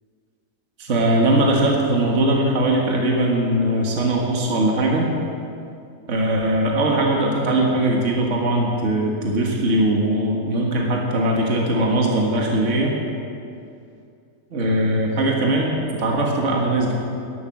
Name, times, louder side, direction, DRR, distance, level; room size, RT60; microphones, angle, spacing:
voice 1, 0.8-5.1 6.1-12.9 14.5-16.9, right 1 dB, 55° right, -1 dB, 1.9 m, -20 dB
12.5 x 12.0 x 7.4 m, 2.5 s
omnidirectional pair, 1.6 m